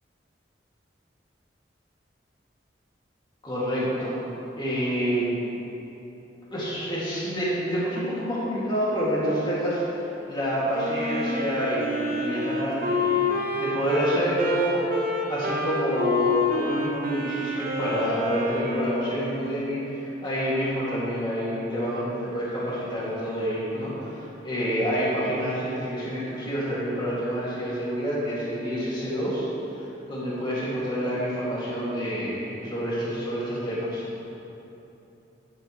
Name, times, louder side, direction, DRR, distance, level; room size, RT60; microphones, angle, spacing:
voice 1, 3.4-4.1 4.5-5.3 6.5-10.0 10.3-13.1 13.6-14.9 15.3-24.2 24.4-29.4 29.8-34.0, equal, 25° left, -8 dB, 2.6 m, -28 dB
Wind instrument woodwind instrument, 10.7-19.2, left 3 dB, 50° right, 1.3 m, -28 dB
13.0 x 9.7 x 3.3 m, 3.0 s
head